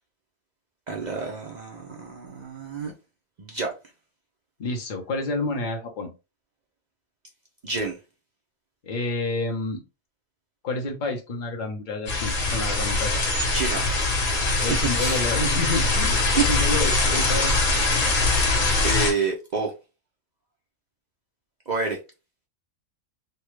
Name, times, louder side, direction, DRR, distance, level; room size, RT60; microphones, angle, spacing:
voice 1, 0.9-2.9 3.4-3.7 7.6-8.0 13.5-13.9 14.6-15.2 18.2-18.5 18.8-19.7 21.7-22.0, right 4 dB, 65° right, 0.4 m, -29 dB
voice 2, 4.6-6.1 8.8-9.8 10.6-13.2 14.6-17.5, left 2 dB, 40° left, 0.8 m, -29 dB
sound 1, 12.1-19.1, left 3 dB, 65° left, 1.3 m, -22 dB
3.3 x 2.2 x 3.1 m
omnidirectional pair, 1.5 m